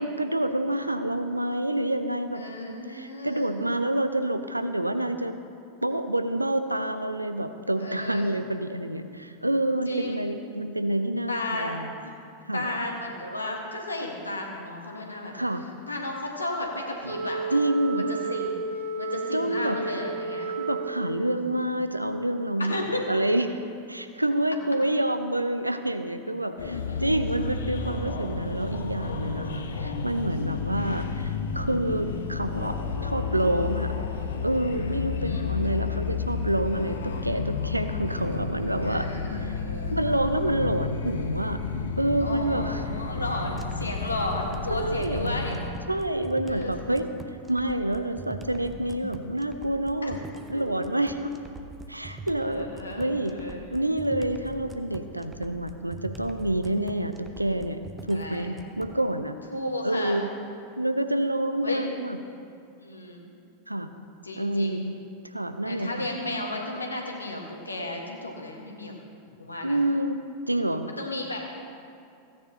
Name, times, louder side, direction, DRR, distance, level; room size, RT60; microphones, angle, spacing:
voice 1, 0.0-2.4 2.9-5.4 5.8-11.9 12.5-12.6 15.3-15.6 17.5-18.1 19.3-19.8 20.6-23.5 23.9-33.9 34.4-39.1 39.4-39.5 39.9-41.6 41.9-42.8 44.7-45.3 45.9-47.1 47.5-50.2 50.5-51.3 51.9-52.7 53.0-53.3 53.7-57.8 58.1-59.4 59.8-60.3 60.8-62.2 63.7-63.9 64.4-64.9 65.3-66.1 69.6-70.9, right 1 dB, 85° right, 9 dB, 0.6 m, -28 dB
voice 2, 2.3-3.5 7.8-8.2 9.8-10.2 11.3-12.1 12.5-15.3 15.9-17.4 17.9-18.6 19.0-20.6 22.6-23.2 26.6-27.3 35.2-35.5 38.8-40.0 42.2-45.6 46.5-46.7 50.0-50.1 50.5-50.6 52.4-53.6 58.1-58.5 59.5-60.2 61.6-61.8 62.8-63.2 64.2-64.8 65.6-68.9 69.4-69.8 70.9-71.5, left 1 dB, 80° left, 0 dB, 1.5 m, -33 dB
Wind instrument woodwind instrument, 17.0-21.4, right 3 dB, 70° right, 2.2 m, -32 dB
sound 1, 26.6-45.7, left 5 dB, 65° left, 0.9 m, -31 dB
sound 2, 43.6-59.0, right 2 dB, 15° right, 0.8 m, -43 dB
16.0 x 9.4 x 2.9 m, 2.5 s
figure-of-eight pair, 90°, 0 cm